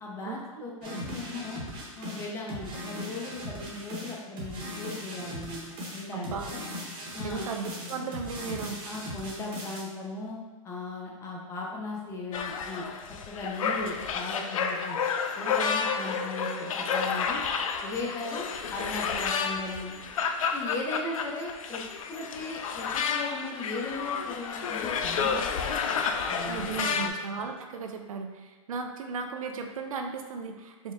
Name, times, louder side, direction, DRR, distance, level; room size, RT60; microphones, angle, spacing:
voice 1, 0.0-1.6 2.0-5.6 5.9-6.6 7.1-7.5 8.8-10.4 10.6-12.9 13.3-15.0 15.4-17.4 17.8-19.9 20.5-21.8 22.1-25.4 26.3-26.7 27.0-27.1, left 2 dB, 15° left, -2 dB, 0.6 m, -37 dB
voice 2, 0.7-1.0 6.1-6.5 7.2-8.8 26.5-30.9, right 5 dB, 80° right, 4 dB, 0.5 m, -36 dB
sound 1, 0.8-9.8, equal, 30° right, 0.9 m, -39 dB
sound 2, 12.3-27.1, left 6 dB, 80° left, 0.4 m, -30 dB
4.4 x 2.1 x 3.5 m, 1.3 s
hypercardioid pair, 145°, 17 cm